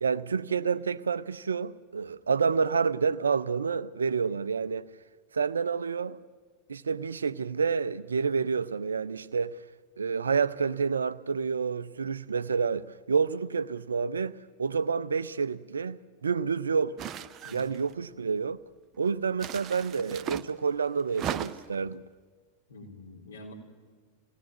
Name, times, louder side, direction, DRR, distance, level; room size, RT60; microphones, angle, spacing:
voice 1, 0.0-4.8 5.3-6.2 6.7-9.5 10.0-16.9 17.5-18.6 19.0-22.0, right 5 dB, 70° right, 0.6 m, -29 dB
sound 1, 17.0-17.9 19.4-20.5 21.1-21.8, right 9 dB, 30° right, 0.8 m, -37 dB
voice 2, 17.4-17.8 22.7-23.5, left 2 dB, 65° left, 4.3 m, -46 dB
27.5 x 18.0 x 7.5 m
figure-of-eight pair, 90°, 0 cm